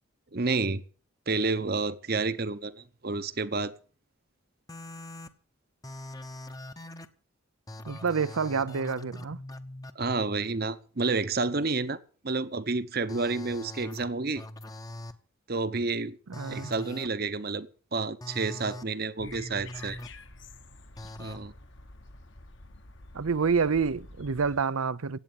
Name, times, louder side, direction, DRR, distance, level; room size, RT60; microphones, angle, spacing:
voice 1, 0.3-0.8 1.3-3.7 10.0-12.0 12.2-14.4 15.5-16.2 16.5-17.7 17.9-20.0 21.2-21.5, right 3 dB, 45° right, 0.9 m, -30 dB
sound 1, 4.7-5.3 5.8-7.1 7.7-9.9 13.1-14.0 14.4-15.1 16.3-17.1 18.2-18.8 19.2-20.1 21.0-21.4, left 1 dB, 15° left, 0.8 m, -42 dB
voice 2, 7.9-9.4 16.3-16.7 23.1-25.2, right 5 dB, 85° right, 0.7 m, -28 dB
sound 2, 19.2-24.6, left 2 dB, 60° left, 1.3 m, -49 dB
16.5 x 8.8 x 7.2 m
head